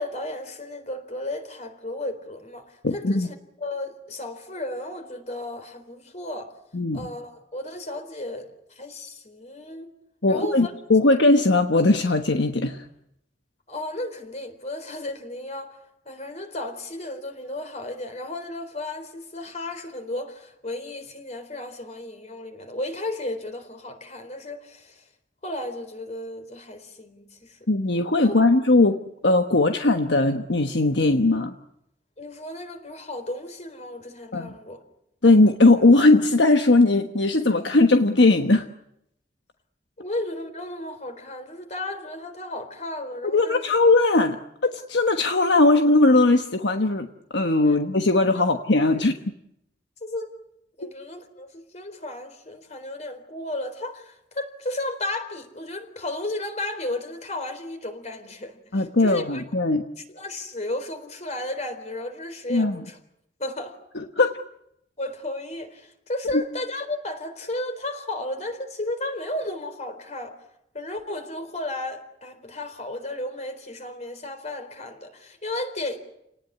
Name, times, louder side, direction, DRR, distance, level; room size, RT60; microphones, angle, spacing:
voice 1, 0.0-6.5 6.9-9.9 10.3-10.7 13.7-15.8 16.1-25.1 25.4-27.6 28.2-28.3 32.2-34.8 40.0-43.6 47.7-47.8 48.9-49.1 50.0-50.3 50.8-59.4 60.1-63.0 63.4-63.8 65.0-70.3 70.7-76.0, left 1 dB, 40° left, 4.1 m, -34 dB
voice 2, 2.8-3.3 6.7-7.1 10.2-12.8 27.7-31.5 34.3-34.5 35.2-38.6 43.3-44.4 44.7-47.1 47.3-49.1 58.7-59.8 62.5-62.8 63.9-64.4, left 2 dB, 70° left, 1.2 m, -19 dB
29.5 x 19.0 x 9.8 m
head